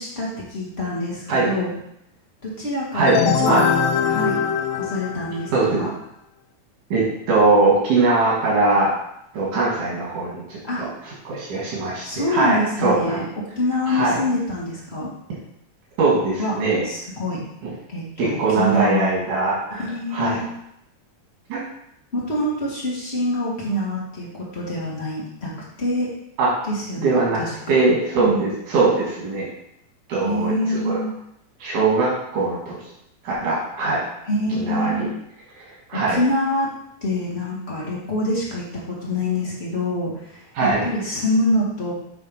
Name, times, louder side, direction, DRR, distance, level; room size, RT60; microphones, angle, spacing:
voice 1, 0.0-1.7 2.4-3.8 4.1-4.4 4.7-5.9 10.7-10.8 12.0-13.2 13.5-15.1 16.4-16.5 16.8-17.4 17.9-19.1 19.7-20.5 22.1-25.5 25.8-26.1 26.7-27.8 28.2-28.5 30.2-31.1 34.2-35.1 35.9-36.7 37.0-41.9, left 1 dB, 30° left, -6 dB, 1.2 m, -25 dB
sound 1, 3.1-5.7, left 7 dB, 80° left, 1.9 m, -22 dB
voice 2, 5.5-5.8 6.9-8.9 9.3-13.2 13.9-14.2 16.0-16.9 17.6-17.7 18.2-19.9 20.1-20.4 21.5-21.6 26.4-26.5 27.0-27.4 27.7-29.5 30.1-31.0 31.6-32.8 33.2-34.0 34.5-35.1 35.5-35.6 35.9-36.2 40.5-40.9, right 3 dB, 90° right, -5 dB, 3.1 m, -21 dB
7.8 x 3.5 x 5.2 m, 0.78 s
omnidirectional pair, 3.4 m